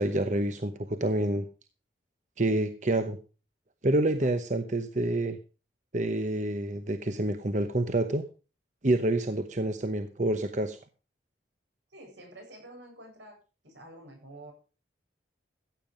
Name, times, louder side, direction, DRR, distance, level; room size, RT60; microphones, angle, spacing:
voice 1, 0.0-1.4 2.4-3.2 3.8-5.4 5.9-8.2 8.8-10.8, right 1 dB, 40° right, 9 dB, 0.9 m, -27 dB
voice 2, 11.9-13.4 13.6-14.5, right 1 dB, 80° right, 2 dB, 7.6 m, -48 dB
15.0 x 9.0 x 5.0 m, 0.34 s
head